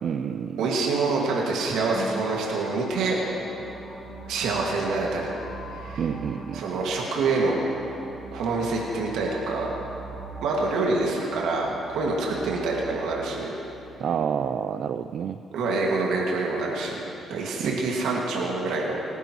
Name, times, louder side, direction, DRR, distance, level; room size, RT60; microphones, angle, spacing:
voice 1, 0.0-0.7 6.0-6.6 14.0-15.4 17.6-17.8, right 7 dB, 60° right, 10 dB, 0.4 m, -28 dB
voice 2, 0.6-3.2 4.3-5.3 5.7-6.0 6.5-7.5 8.3-9.7 10.4-13.5 15.5-17.0 17.3-19.1, right 3 dB, 85° right, -3 dB, 2.0 m, -26 dB
sound 1, 1.9-13.9, right 2 dB, 5° right, 2.9 m, -41 dB
24.5 x 10.5 x 3.1 m, 2.9 s
cardioid pair, 90°, 0 cm